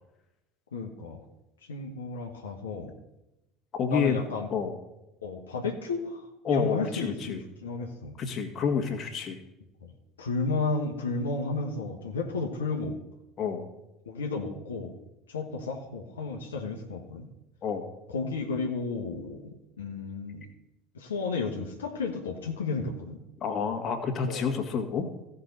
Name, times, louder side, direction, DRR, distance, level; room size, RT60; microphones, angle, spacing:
voice 1, 0.7-1.2 1.7-2.9 3.9-4.5 5.2-8.1 9.8-9.9 10.2-13.0 14.0-14.9 15.3-17.3 18.1-20.4 20.9-23.2 24.2-24.5, left 4 dB, 80° left, 1 dB, 1.2 m, -33 dB
voice 2, 3.7-4.2 4.5-4.8 6.4-7.4 8.2-9.4 13.4-13.7 17.6-17.9 23.4-25.1, left 6 dB, 40° left, 4 dB, 1.8 m, -29 dB
16.0 x 5.6 x 4.0 m, 0.92 s
figure-of-eight pair, 65°, 0 cm